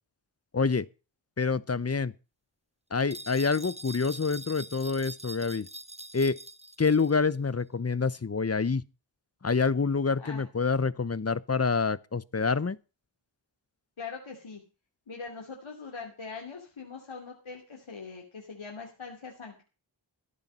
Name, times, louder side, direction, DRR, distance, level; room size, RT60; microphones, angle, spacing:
voice 1, 0.5-0.9 1.4-2.1 2.9-5.7 6.1-6.4 6.8-8.8 9.4-12.8, left 4 dB, 30° left, 0.7 m, -27 dB
sound 1, 3.1-7.2, right 2 dB, 15° right, 0.9 m, -44 dB
voice 2, 14.0-14.6 15.1-19.6, left 4 dB, 85° left, 2.9 m, -42 dB
15.0 x 8.9 x 5.5 m
wide cardioid pair, 65°, 47 cm